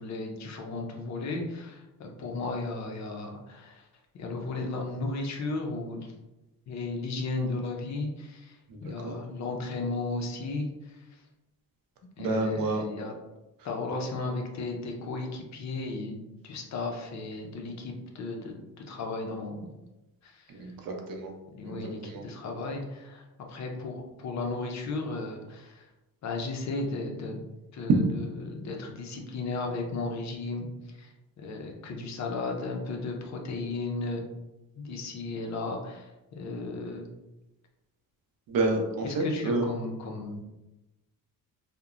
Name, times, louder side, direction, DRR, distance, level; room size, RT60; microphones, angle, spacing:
voice 1, 0.0-3.9 4.1-6.1 6.7-11.2 12.2-13.1 13.6-19.8 20.2-20.7 21.5-25.9 26.2-27.4 27.7-34.2 34.8-37.1 39.0-40.4, left 3 dB, 50° left, 2 dB, 0.5 m, -35 dB
voice 2, 8.7-9.2 12.2-12.8 20.5-21.3 21.6-21.8 22.0-22.2 38.5-39.7, right 2 dB, 70° right, 2 dB, 0.6 m, -29 dB
2.8 x 2.1 x 2.4 m, 0.99 s
cardioid pair, 140°, 36 cm